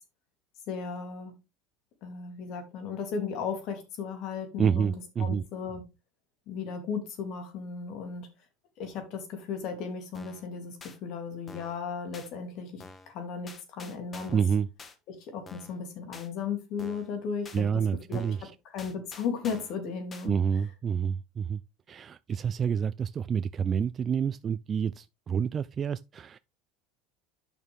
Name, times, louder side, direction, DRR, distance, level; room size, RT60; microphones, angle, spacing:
voice 1, 0.7-1.3 2.0-4.9 5.2-5.8 6.5-8.3 8.8-14.4 15.1-17.7 18.1-18.4 18.6-20.4, left 6 dB, 60° left, 3.0 m, -35 dB
voice 2, 4.6-5.4 14.3-14.7 17.5-18.5 20.2-21.6 21.9-26.4, right 7 dB, 35° right, 0.3 m, -28 dB
sound 1, 10.1-10.5 10.8-11.0 11.5-11.8 12.1-12.3 12.8-13.1 13.5-14.5 14.8-15.0 15.5-15.8 16.1-16.3 16.8-17.1 17.4-17.6 18.1-18.4 18.8-19.8 20.1-20.3, left 4 dB, 30° left, 1.7 m, -48 dB
8.9 x 6.2 x 3.5 m
supercardioid pair, 100°, 0 cm